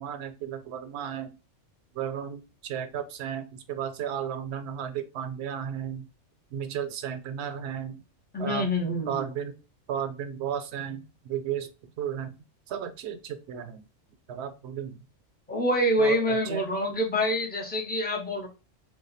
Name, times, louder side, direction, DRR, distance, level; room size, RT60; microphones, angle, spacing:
voice 1, 0.0-1.3 1.9-6.1 6.5-8.0 8.4-8.7 9.1-9.6 9.9-11.7 12.0-12.3 12.7-13.8 14.3-15.0 16.0-16.6, right 9 dB, 70° right, 9 dB, 0.8 m, -34 dB
voice 2, 8.3-9.3 15.5-18.5, equal, 10° left, 1 dB, 0.5 m, -26 dB
2.6 x 2.2 x 3.9 m, 0.30 s
omnidirectional pair, 1.3 m